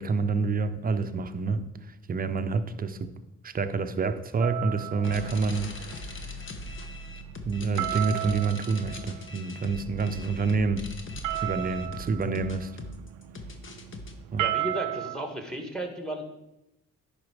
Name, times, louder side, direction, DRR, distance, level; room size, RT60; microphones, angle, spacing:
voice 1, 0.0-1.7 2.1-3.1 3.4-6.2 7.5-12.7 14.3-14.5, right 4 dB, 30° right, 0.7 m, -28 dB
sound 1, 4.4-15.2, right 16 dB, 85° right, 0.5 m, -36 dB
sound 2, 5.0-14.1, left 2 dB, 40° left, 1.1 m, -40 dB
voice 2, 14.4-16.3, right 1 dB, ahead, 1.4 m, -34 dB
10.5 x 4.5 x 4.9 m
cardioid pair, 90°, 30 cm